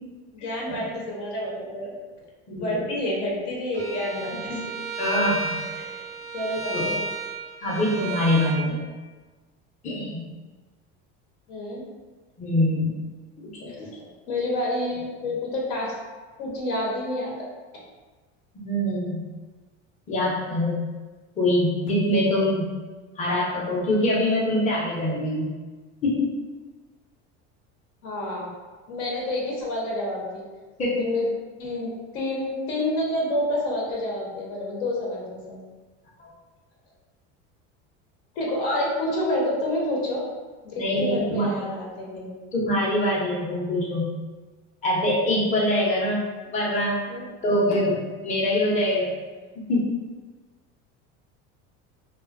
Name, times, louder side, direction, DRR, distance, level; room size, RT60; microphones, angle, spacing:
voice 1, 0.3-1.9 2.5-4.6 5.8-6.0 6.3-7.1 11.5-11.8 13.7-15.9 16.4-17.3 28.0-28.5 28.9-30.5 31.0-31.3 31.6-35.6 38.4-40.3 40.6-42.3 47.1-47.3, left 1 dB, 85° left, -3 dB, 0.8 m, -28 dB
voice 2, 2.5-2.8 4.5-4.7 5.0-5.6 6.7-6.8 7.6-8.9 9.8-10.2 12.4-12.9 13.4-13.9 18.5-19.2 20.1-20.8 21.4-22.7 23.2-25.5 26.0-26.3 30.8-31.1 36.2-36.3 40.8-41.5 42.5-44.1 44.8-46.2 46.5-47.1 47.4-49.1 49.6-49.9, left 1 dB, 25° left, -5 dB, 0.5 m, -24 dB
Bowed string instrument, 3.7-8.6, right 3 dB, 55° right, 0.4 m, -33 dB
2.3 x 2.1 x 2.4 m, 1.3 s
supercardioid pair, 125°, 30 cm